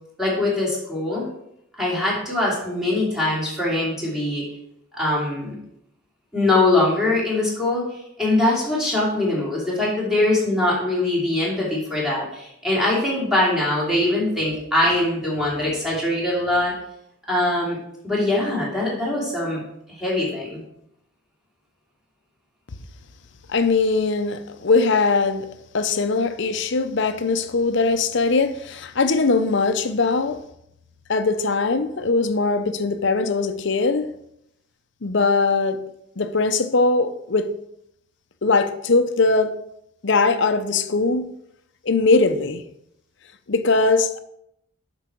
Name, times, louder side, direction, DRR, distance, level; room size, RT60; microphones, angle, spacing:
voice 1, 0.2-1.3 1.8-4.4 4.9-5.6 6.3-7.9 8.2-16.7 17.3-17.8 18.0-19.6 19.9-20.6, left 2 dB, ahead, 2.8 m, -22 dB
voice 2, 23.5-25.5 25.7-30.4 31.1-34.1 35.0-35.8 36.2-37.5 38.4-39.5 40.0-41.3 41.8-42.6 43.5-44.2, left 3 dB, 55° left, 0.6 m, -20 dB
8.0 x 6.1 x 4.5 m
head